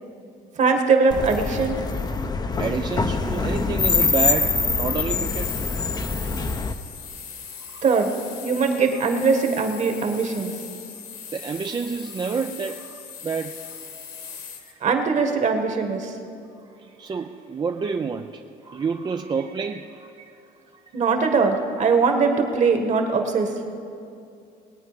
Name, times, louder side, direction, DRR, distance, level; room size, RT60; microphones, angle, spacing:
voice 1, 0.6-1.8 7.8-8.1 8.4-10.5 14.8-16.1 20.9-23.5, right 4 dB, 45° right, 5 dB, 1.6 m, -21 dB
sound 1, 1.1-6.7, left 4 dB, 25° left, 0.6 m, -24 dB
voice 2, 2.6-5.5 7.7-7.8 11.3-13.8 14.6-15.1 16.6-20.4 20.7-21.0, right 5 dB, 25° right, 5 dB, 0.4 m, -29 dB
sound 2, 5.1-14.7, left 6 dB, 65° left, 1.7 m, -40 dB
20.5 x 8.8 x 5.2 m, 2.5 s
cardioid pair, 110°, 17 cm